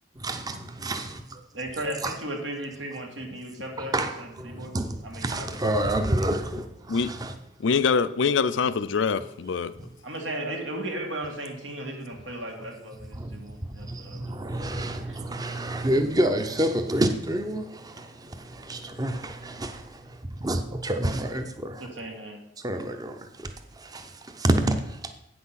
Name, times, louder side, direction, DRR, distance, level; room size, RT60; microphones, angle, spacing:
voice 1, 0.2-1.4 2.0-2.2 3.8-7.3 9.8-9.9 13.1-13.5 13.8-21.9 22.6-25.1, right 1 dB, 20° right, 0.6 m, -29 dB
voice 2, 1.5-4.7 5.0-5.5 10.0-14.2 15.0-15.2 21.8-22.4, right 1 dB, 85° right, 1.9 m, -36 dB
voice 3, 7.6-9.7, left 5 dB, 90° left, 0.5 m, -24 dB
8.7 x 6.1 x 5.7 m
head